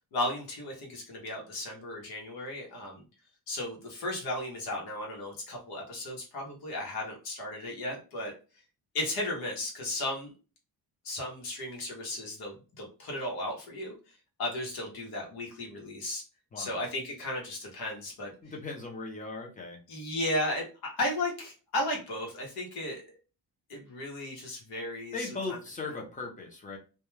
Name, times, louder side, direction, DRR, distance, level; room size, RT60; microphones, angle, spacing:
voice 1, 0.1-3.0 3.5-8.3 8.9-10.3 11.0-13.9 14.4-16.2 16.6-18.3 19.9-23.0 23.7-25.3, left 1 dB, 85° left, -1 dB, 1.0 m, -35 dB
voice 2, 18.4-19.8 25.1-26.8, left 3 dB, 20° left, 0 dB, 0.6 m, -38 dB
2.2 x 2.2 x 3.1 m, 0.33 s
wide cardioid pair, 170°, 37 cm